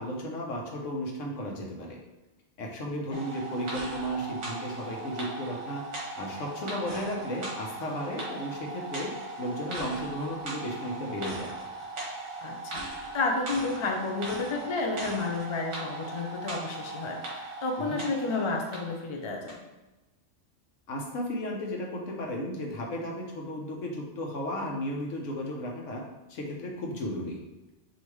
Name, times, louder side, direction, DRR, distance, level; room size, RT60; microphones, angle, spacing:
voice 1, 0.0-2.0 2.6-5.8 6.2-11.5 17.8-18.0 20.9-26.0 26.3-27.4, equal, 75° left, -1 dB, 1.2 m, -34 dB
sound 1, 3.1-19.0 19.5-19.6, right 2 dB, 65° right, 1.4 m, -38 dB
voice 2, 12.4-12.8 13.1-19.6, left 3 dB, 50° left, 2 dB, 0.3 m, -31 dB
5.0 x 2.8 x 3.1 m, 1.1 s
omnidirectional pair, 1.3 m